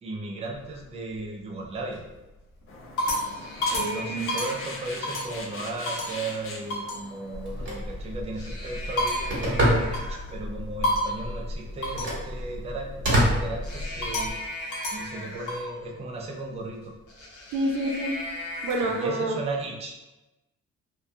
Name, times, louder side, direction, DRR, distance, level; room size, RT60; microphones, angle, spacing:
voice 1, 0.0-2.0 3.8-14.4 14.9-16.9 18.8-20.0, right 2 dB, 20° right, 0 dB, 0.4 m, -35 dB
sound 1, 0.5-1.2 1.8-2.2 2.6-5.4 5.9-6.2 6.7-7.0 8.2-10.3 10.8-11.3 11.8-12.2 13.6-15.7 17.1-19.1, left 1 dB, 75° left, 0.7 m, -32 dB
sound 2, 2.7-7.7, left 3 dB, 45° left, 0.6 m, -41 dB
voice 2, 3.7-4.4 17.5-18.2 18.6-19.4, right 1 dB, 85° right, 1 dB, 0.5 m, -28 dB
Telephone, 7.3-14.3, equal, 40° right, 1.1 m, -29 dB
2.2 x 2.2 x 2.6 m, 1.0 s
cardioid pair, 90°, 30 cm